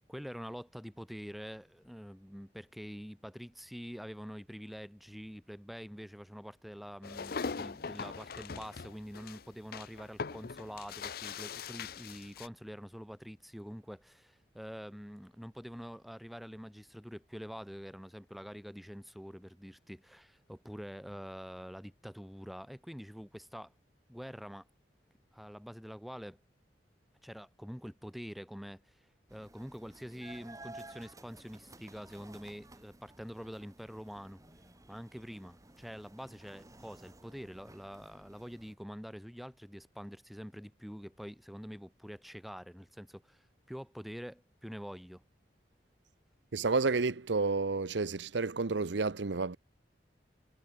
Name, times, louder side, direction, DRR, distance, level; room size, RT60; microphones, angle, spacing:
voice 1, 0.1-23.7 24.1-24.7 25.3-26.4 27.2-28.8 29.3-34.4 34.9-45.2, equal, ahead, 1.6 m, -46 dB
sound 1, 7.0-12.5, left 5 dB, 55° left, 0.6 m, -41 dB
sound 2, 29.3-38.8, right 2 dB, 20° right, 3.9 m, -55 dB
voice 2, 46.5-49.6, right 4 dB, 80° right, 0.8 m, -30 dB
head